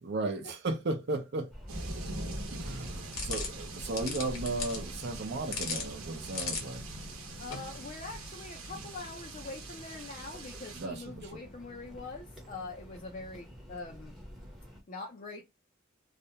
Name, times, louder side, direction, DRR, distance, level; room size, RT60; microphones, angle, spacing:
voice 1, 0.0-1.5 2.5-6.9 10.5-11.4, right 2 dB, 55° right, 0.6 m, -35 dB
sound 1, 1.5-14.8, equal, ahead, 0.7 m, -46 dB
sound 2, 1.7-10.9, right 3 dB, 85° right, 0.8 m, -44 dB
sound 3, 3.1-8.3, left 5 dB, 70° left, 1.1 m, -40 dB
voice 2, 7.4-14.2 14.9-15.4, left 3 dB, 35° left, 0.5 m, -43 dB
2.5 x 2.1 x 2.7 m
head